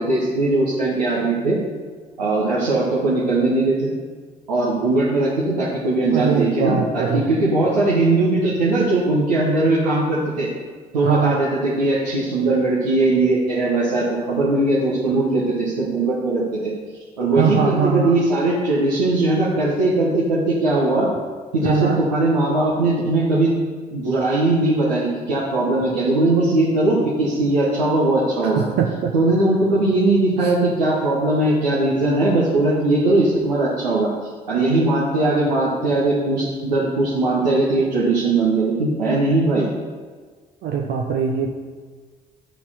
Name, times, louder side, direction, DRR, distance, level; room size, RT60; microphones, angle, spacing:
voice 1, 0.0-1.6 2.2-3.9 4.5-10.5 10.9-16.7 17.2-21.1 21.5-23.5 23.9-28.7 29.1-34.1 34.5-39.7, right 2 dB, 80° right, -7 dB, 1.1 m, -19 dB
voice 2, 6.1-7.3 11.0-11.4 17.3-18.2 21.6-22.0 28.4-29.1 30.4-30.5 40.6-41.5, right 6 dB, 55° right, 0 dB, 0.7 m, -22 dB
11.5 x 4.3 x 4.3 m, 1.5 s
figure-of-eight pair, 50°, 21 cm